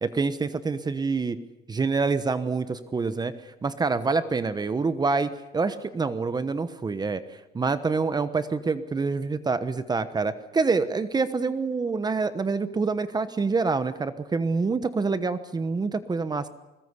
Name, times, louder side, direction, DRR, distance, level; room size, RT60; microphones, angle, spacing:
voice 1, 0.0-1.4 1.7-16.5, right 4 dB, 25° right, 12 dB, 1.1 m, -26 dB
21.5 x 20.0 x 8.2 m, 1.0 s
cardioid pair, 110°, 17 cm